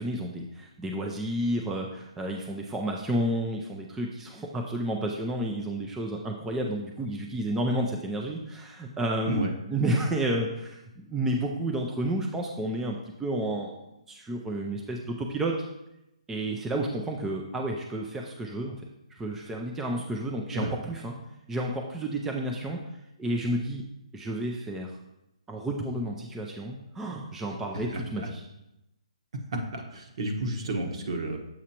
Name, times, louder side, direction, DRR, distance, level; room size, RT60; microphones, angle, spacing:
voice 1, 0.0-13.7 14.1-15.6 16.3-18.8 19.2-21.1 21.5-22.8 23.2-23.8 24.1-25.0 25.5-28.4, right 1 dB, 5° right, 0 dB, 0.4 m, -31 dB
voice 2, 27.7-28.3 29.5-31.4, right 1 dB, 55° right, 3 dB, 1.2 m, -31 dB
7.4 x 4.9 x 2.9 m, 0.88 s
hypercardioid pair, 150°, 4 cm